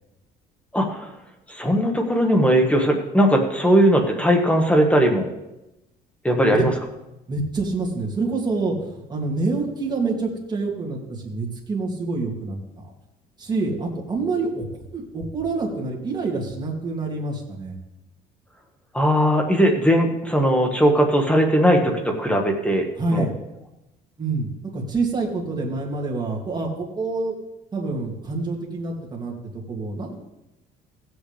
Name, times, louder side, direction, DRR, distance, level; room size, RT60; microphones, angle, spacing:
voice 1, 0.7-1.1 1.5-5.3 6.2-6.7 18.9-22.9 23.1-23.3, equal, 5° left, 2 dB, 1.8 m, -19 dB
voice 2, 7.3-12.6 13.4-14.7 14.9-17.8 23.0-23.3 24.2-27.3 27.7-29.3 29.7-30.2, right 3 dB, 25° right, -3 dB, 2.8 m, -27 dB
16.5 x 7.9 x 3.5 m, 0.94 s
cardioid pair, 110°, 17 cm